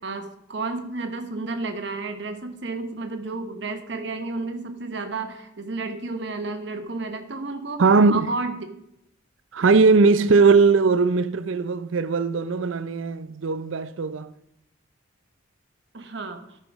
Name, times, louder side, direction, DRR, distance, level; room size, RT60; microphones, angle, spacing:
voice 1, 0.0-7.8 8.1-8.7 15.9-16.5, right 3 dB, 60° right, 1.2 m, -31 dB
voice 2, 7.8-8.3 9.5-14.3, right 4 dB, 80° right, 0.5 m, -19 dB
13.5 x 5.8 x 4.7 m
head